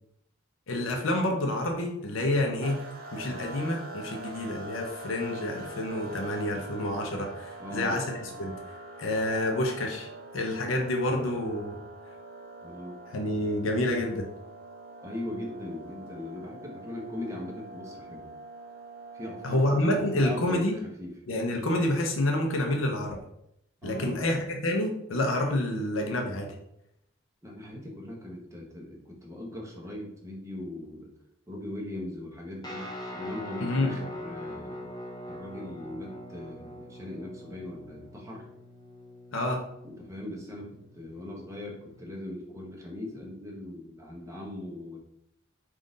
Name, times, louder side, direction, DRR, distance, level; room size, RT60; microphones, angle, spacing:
voice 1, 0.7-2.8 3.1-8.5 9.0-10.1 10.3-11.8 13.1-14.3 19.4-20.8 21.3-23.2 23.8-26.5 33.6-33.9 39.3-39.6, left 1 dB, 75° left, 2 dB, 0.6 m, -28 dB
sound 1, 2.6-20.5, right 2 dB, 45° right, 0.6 m, -44 dB
voice 2, 7.6-8.0 12.6-13.0 15.0-18.3 19.1-20.7 21.0-21.1 23.8-24.4 27.4-31.1 31.5-32.9 33.1-34.9 35.3-38.4 39.8-45.0, left 1 dB, 15° right, -2 dB, 0.9 m, -39 dB
Guitar, 32.6-42.0, left 1 dB, 20° left, 0.5 m, -43 dB
3.7 x 2.5 x 3.8 m, 0.78 s
head